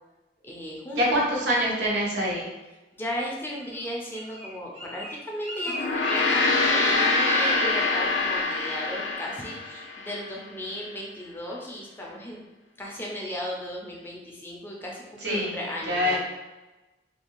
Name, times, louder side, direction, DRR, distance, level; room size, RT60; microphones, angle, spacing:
voice 1, 0.4-1.3 2.9-12.4 12.8-16.2, equal, 10° left, -2 dB, 0.4 m, -35 dB
voice 2, 1.0-2.4 15.2-15.6 15.9-16.2, equal, 80° right, -4 dB, 0.8 m, -24 dB
Bird, 3.5-7.2 7.4-7.8 8.1-8.4 8.8-9.2 9.6-9.7, equal, 40° right, 0.8 m, -40 dB
Gong, 5.7-10.3, left 3 dB, 85° left, 0.4 m, -25 dB
2.5 x 2.3 x 2.9 m, 1.1 s
head